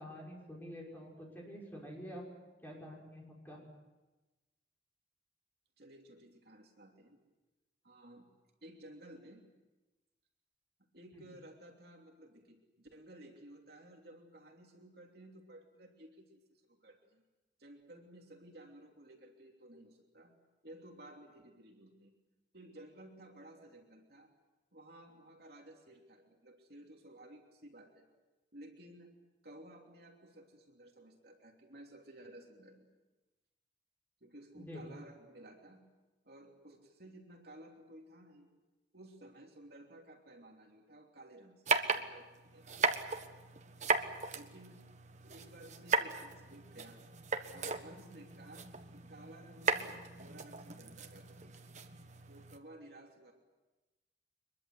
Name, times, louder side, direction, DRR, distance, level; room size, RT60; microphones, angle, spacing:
voice 1, 0.0-2.2 2.6-3.6 11.1-11.2 34.5-34.8, equal, 10° left, -2 dB, 6.4 m, -48 dB
voice 2, 5.8-7.2 7.8-8.3 8.6-9.4 10.9-17.2 17.6-20.3 20.6-22.1 22.5-24.3 24.7-28.1 28.5-29.1 29.4-32.9 34.2-35.8 36.2-38.5 38.9-43.0 44.3-44.8 45.2-47.0 47.5-51.5 52.3-53.3, right 1 dB, 55° right, 1 dB, 3.1 m, -55 dB
sound 1, 41.7-52.6, right 4 dB, 40° right, 1.4 m, -37 dB
24.0 x 22.0 x 8.0 m, 1.1 s
head